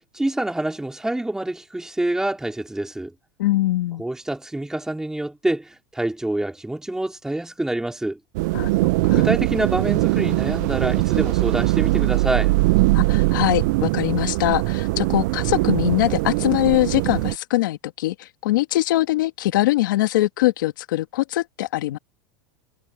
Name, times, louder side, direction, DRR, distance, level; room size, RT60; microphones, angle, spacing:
voice 1, 0.1-3.1 4.0-8.2 9.0-12.5, right 1 dB, 5° right, 4.6 m, -26 dB
voice 2, 3.4-4.0 8.5-8.7 9.0-9.3 12.9-22.0, left 16 dB, 80° left, 1.9 m, -22 dB
sound 1, 8.3-17.3, right 22 dB, 65° right, 0.4 m, -21 dB
supercardioid pair, 125°, 10 cm